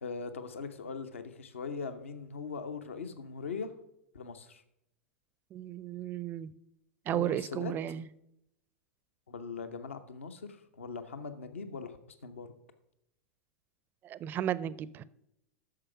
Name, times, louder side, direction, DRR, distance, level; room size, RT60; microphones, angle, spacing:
voice 1, 0.0-3.7 4.1-4.6 7.1-7.7 9.3-12.5, left 5 dB, 70° left, 9 dB, 0.9 m, -40 dB
voice 2, 5.5-6.5 7.1-8.0 14.0-15.0, right 11 dB, 30° right, 19 dB, 0.5 m, -34 dB
9.7 x 6.7 x 5.8 m, 0.81 s
figure-of-eight pair, 90°, 7 cm